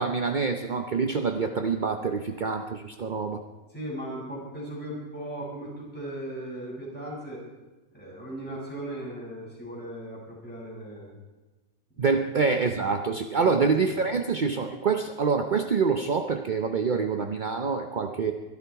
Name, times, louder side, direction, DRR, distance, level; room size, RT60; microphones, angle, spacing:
voice 1, 0.0-3.4 12.0-18.3, right 5 dB, 50° right, 5 dB, 0.5 m, -26 dB
voice 2, 3.7-7.4 7.9-11.1 12.0-12.2 13.3-13.7, right 1 dB, 5° left, -6 dB, 7.0 m, -37 dB
22.5 x 12.5 x 4.7 m, 1.2 s
omnidirectional pair, 1.8 m